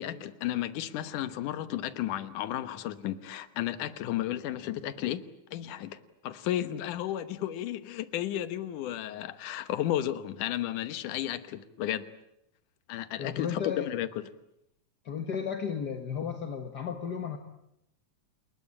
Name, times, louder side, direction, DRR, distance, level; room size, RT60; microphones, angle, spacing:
voice 1, 0.0-12.1 12.9-14.1, left 12 dB, 85° left, 12 dB, 2.7 m, -33 dB
voice 2, 13.2-13.9 15.0-17.4, left 7 dB, 45° left, 6 dB, 1.4 m, -34 dB
29.5 x 21.0 x 8.7 m, 0.81 s
omnidirectional pair, 3.5 m